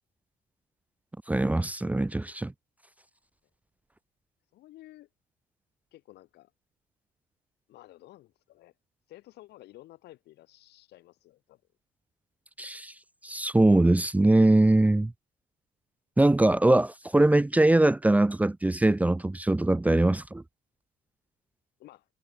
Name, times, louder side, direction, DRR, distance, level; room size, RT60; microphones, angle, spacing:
voice 1, 1.3-2.5 12.6-12.9 13.2-15.1 16.2-20.4, right 2 dB, 10° right, 0.7 m, -22 dB
voice 2, 4.5-5.1 5.9-6.5 7.7-8.7 9.1-11.6 21.8-22.1, left 16 dB, 80° left, 6.9 m, -52 dB
cardioid pair, 110°, 17 cm